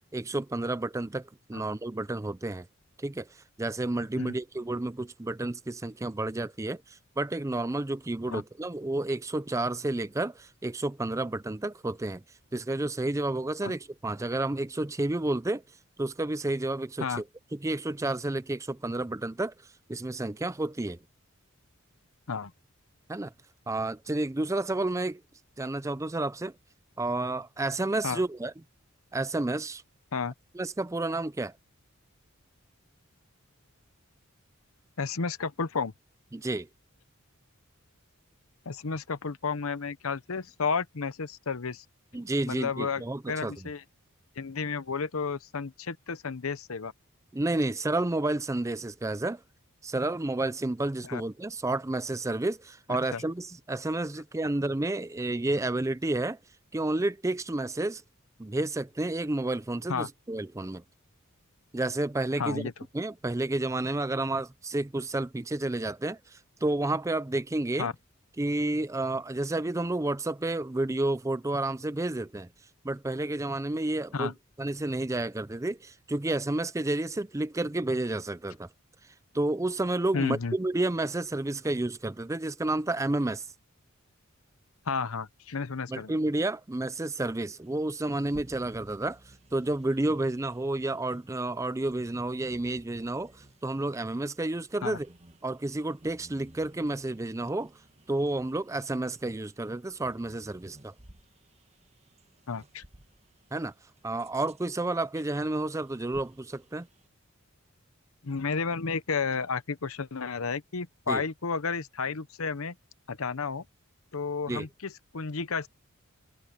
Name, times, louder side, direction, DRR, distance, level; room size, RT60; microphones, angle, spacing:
voice 1, 0.1-2.7 3.0-3.3 3.6-12.2 12.5-15.6 16.0-17.2 17.5-19.5 19.9-21.0 23.1-23.3 23.7-25.2 25.6-26.5 27.0-28.5 29.1-29.8 30.5-31.5 36.3-36.7 42.1-43.5 47.3-49.4 49.8-56.4 56.7-58.0 58.4-60.8 61.7-62.6 62.9-66.2 66.6-67.9 68.4-72.5 72.8-74.3 74.6-78.7 79.3-83.4 85.9-89.2 89.5-93.3 93.6-95.1 95.4-97.7 98.1-100.9 103.5-103.7 104.0-106.9 111.1-111.2 114.5-114.7, right 2 dB, 15° right, 0.5 m, -30 dB
voice 2, 35.0-35.9 38.7-41.8 42.5-43.8 44.4-46.9 51.0-51.2 52.9-53.2 59.9-60.1 62.4-62.7 67.8-67.9 74.1-74.3 80.1-80.6 84.9-86.1 94.8-95.0 102.5-102.8 108.2-112.7 113.1-113.6 114.1-115.7, left 5 dB, 75° left, 0.8 m, -32 dB
Bird vocalization bird call bird song, 87.6-107.1, right 1 dB, 30° right, 1.7 m, -57 dB
head